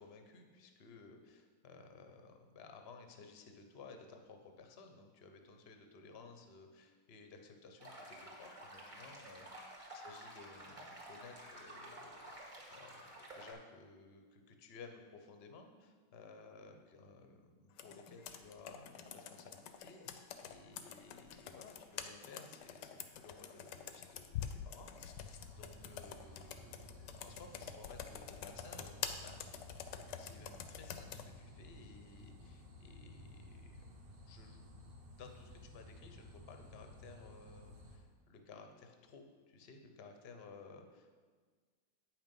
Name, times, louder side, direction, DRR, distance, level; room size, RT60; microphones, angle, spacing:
voice 1, 0.0-9.6 9.9-29.7 30.0-33.9 34.3-34.6 35.2-41.2, left 4 dB, 45° left, 5 dB, 0.8 m, -57 dB
sound 1, 7.8-13.5, right 1 dB, 20° right, 1.5 m, -52 dB
Computer keyboard, 17.8-31.3, left 9 dB, 75° left, 1.2 m, -47 dB
sound 2, 25.2-38.0, left 1 dB, 70° right, 1.9 m, -55 dB
8.6 x 5.9 x 5.3 m, 1.5 s
omnidirectional pair, 2.0 m